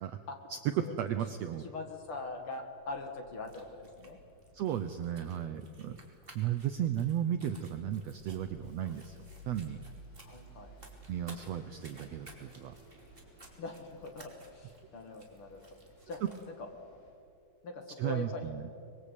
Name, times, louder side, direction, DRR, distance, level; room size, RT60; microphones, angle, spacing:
voice 1, 0.5-1.6 4.5-6.0 6.3-9.2 9.5-9.8 11.1-12.7 16.2-16.3 18.0-18.6, right 10 dB, 90° right, 9 dB, 1.4 m, -34 dB
voice 2, 1.6-4.2 10.2-10.7 13.6-15.6 16.1-16.2 16.4-16.7 17.6-18.5, left 3 dB, 45° left, 4 dB, 2.3 m, -42 dB
Bus, 1.8-17.1, equal, 80° left, 7.3 m, -57 dB
sound 1, 3.3-16.5, right 2 dB, 15° right, 2.9 m, -57 dB
25.0 x 21.5 x 8.3 m, 2.5 s
omnidirectional pair, 4.1 m